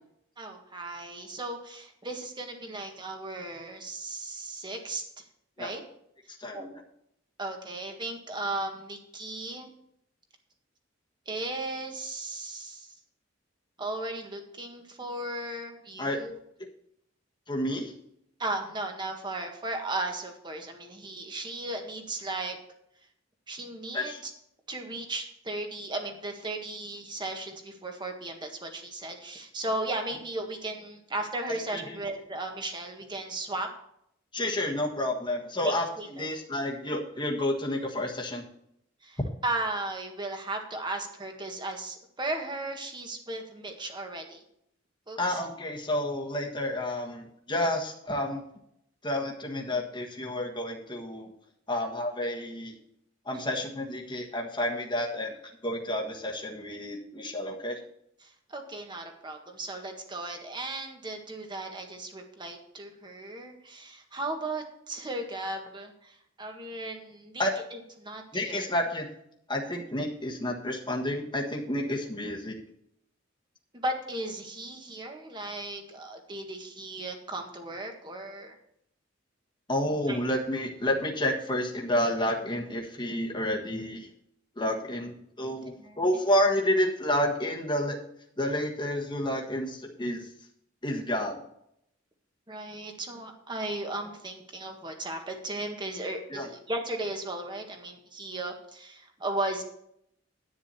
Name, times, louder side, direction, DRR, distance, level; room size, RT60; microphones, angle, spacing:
voice 1, 0.4-5.2 5.6-5.8 6.5-6.7 7.4-9.7 11.2-12.9 13.8-16.4 18.4-22.6 23.5-24.3 24.7-33.7 35.6-36.3 39.0-44.4 45.1-45.4 53.3-53.4 58.2-67.4 67.7-68.7 73.7-78.6 80.1-80.2 85.8-86.0 92.5-99.6, right 2 dB, 25° right, 4 dB, 1.6 m, -36 dB
voice 2, 6.3-6.8 16.0-16.2 17.5-17.9 23.9-24.2 31.9-32.0 34.3-38.4 45.2-48.4 49.0-51.3 51.7-52.8 53.2-55.3 55.6-57.8 67.4-67.5 68.3-69.1 69.5-72.5 79.7-84.1 84.6-88.0 88.4-90.3 90.8-91.4 96.3-96.5, left 1 dB, 25° left, -1 dB, 1.5 m, -30 dB
10.5 x 9.3 x 4.3 m, 0.73 s
head